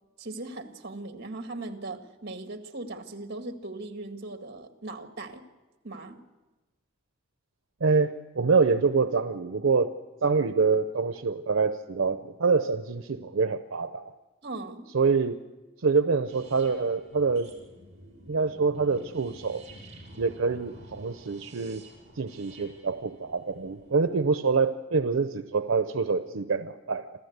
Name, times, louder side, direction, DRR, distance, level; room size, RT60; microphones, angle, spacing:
voice 1, 0.2-5.5 5.8-6.2 14.4-14.9, right 2 dB, 55° right, 6 dB, 1.9 m, -39 dB
voice 2, 7.8-9.9 10.2-14.0 14.9-15.4 15.8-17.5 18.3-19.6 20.2-21.9 22.2-27.1, right 4 dB, 85° right, 10 dB, 0.7 m, -26 dB
sound 1, 16.3-24.1, right 1 dB, 35° right, 5.5 m, -50 dB
27.0 x 15.0 x 8.1 m, 1.2 s
head